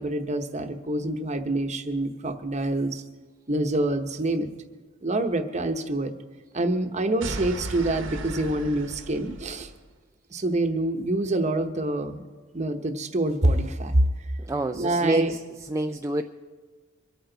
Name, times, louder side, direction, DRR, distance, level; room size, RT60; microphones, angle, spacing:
voice 1, 0.0-3.0 3.5-4.5 5.0-6.1 6.5-9.7 10.3-12.2 12.5-14.1 14.7-15.3, right 1 dB, 35° right, 6 dB, 0.9 m, -26 dB
sound 1, 7.2-9.8, right 2 dB, 70° right, 1.1 m, -36 dB
voice 2, 14.4-15.4 15.7-16.2, right 1 dB, 15° right, 4 dB, 0.4 m, -27 dB
25.0 x 8.9 x 3.9 m, 1.4 s
head